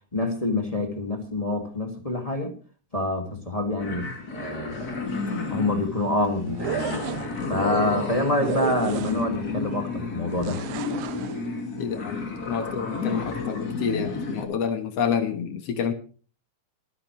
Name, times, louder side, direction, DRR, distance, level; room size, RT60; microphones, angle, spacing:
voice 1, 0.1-2.6 2.9-5.0 5.5-10.6, left 2 dB, 15° left, 3 dB, 1.7 m, -27 dB
sound 1, 3.8-14.5, left 4 dB, 35° left, 2.4 m, -31 dB
sound 2, 6.5-7.5 8.4-9.5 10.4-11.4, right 11 dB, 80° right, 2.3 m, -33 dB
voice 2, 11.8-15.9, left 7 dB, 60° left, 9 dB, 2.2 m, -28 dB
25.0 x 9.8 x 3.1 m, 0.38 s
omnidirectional pair, 3.5 m